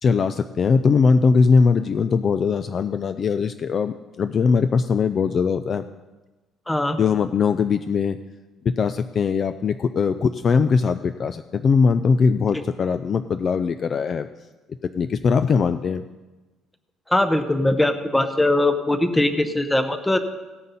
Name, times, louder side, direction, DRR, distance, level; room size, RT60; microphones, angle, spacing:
voice 1, 0.0-5.8 7.0-8.2 8.6-14.3 14.9-16.0, left 5 dB, 30° left, 10 dB, 0.3 m, -20 dB
voice 2, 6.7-7.0 17.1-20.2, left 1 dB, 5° left, 9 dB, 0.7 m, -21 dB
17.0 x 9.5 x 4.1 m, 1.2 s
cardioid pair, 165°, 0 cm